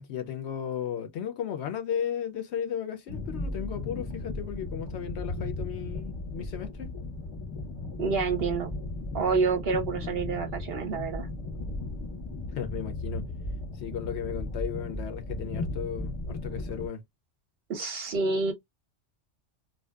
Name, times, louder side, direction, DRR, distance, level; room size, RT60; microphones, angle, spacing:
voice 1, 0.0-6.9 12.5-13.2 13.8-17.0, left 8 dB, 65° left, 0.8 m, -35 dB
sound 1, 3.1-16.9, left 2 dB, 30° left, 0.6 m, -36 dB
voice 2, 8.0-8.7 9.1-11.3 17.7-18.5, right 4 dB, 60° right, 0.8 m, -28 dB
2.7 x 2.2 x 2.2 m
omnidirectional pair, 1.3 m